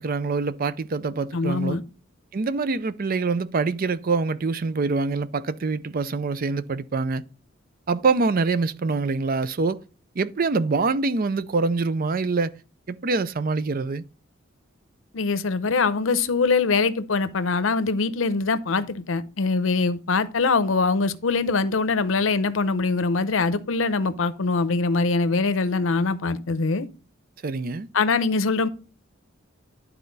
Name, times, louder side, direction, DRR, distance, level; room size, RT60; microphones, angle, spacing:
voice 1, 0.0-1.8 2.3-7.2 7.9-9.8 10.2-12.6 12.9-14.0 27.4-27.9, right 4 dB, 45° right, 0.5 m, -25 dB
voice 2, 1.3-1.8 15.1-26.9 27.9-28.7, left 4 dB, 75° left, 0.7 m, -23 dB
11.5 x 4.4 x 4.0 m
head